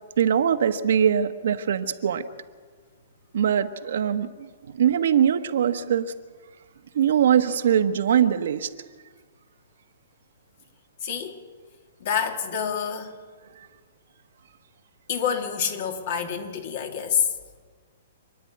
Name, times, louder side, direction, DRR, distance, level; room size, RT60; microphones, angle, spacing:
voice 1, 0.2-2.2 3.3-6.1 6.9-8.7, right 9 dB, 65° right, 9 dB, 1.2 m, -22 dB
voice 2, 11.0-11.3 12.0-13.1 15.1-17.3, left 7 dB, 50° left, 5 dB, 2.6 m, -27 dB
27.5 x 10.0 x 9.4 m, 1.5 s
hypercardioid pair, 160°, 0 cm